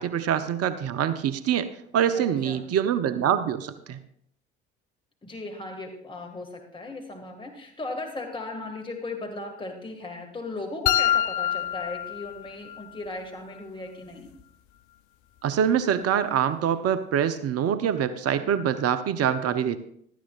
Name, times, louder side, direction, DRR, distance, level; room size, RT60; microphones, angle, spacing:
voice 1, 0.0-4.0 15.4-19.8, right 9 dB, 45° right, 12 dB, 0.8 m, -25 dB
voice 2, 2.1-2.7 5.2-14.3, left 2 dB, 15° left, 2 dB, 2.0 m, -37 dB
sound 1, 10.9-12.9, left 11 dB, 60° left, 0.6 m, -26 dB
16.5 x 12.5 x 2.4 m, 0.67 s
figure-of-eight pair, 50°, 34 cm